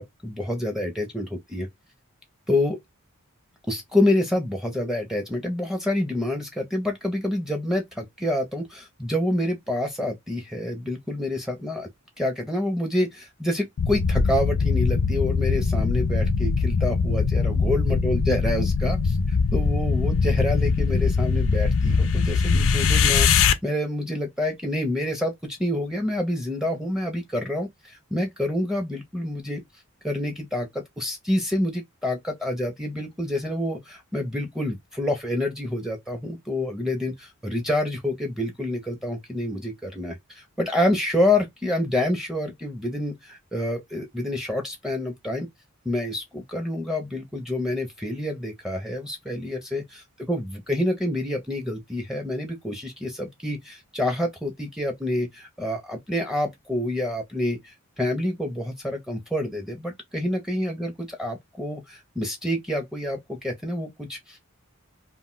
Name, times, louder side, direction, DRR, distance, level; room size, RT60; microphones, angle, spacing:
voice 1, 0.0-1.7 2.5-2.8 3.7-11.9 12.2-29.6 30.0-45.5 45.8-64.4, left 1 dB, ahead, 0.5 m, -27 dB
sound 1, 13.8-23.5, left 5 dB, 60° left, 0.4 m, -22 dB
2.4 x 2.1 x 3.7 m
head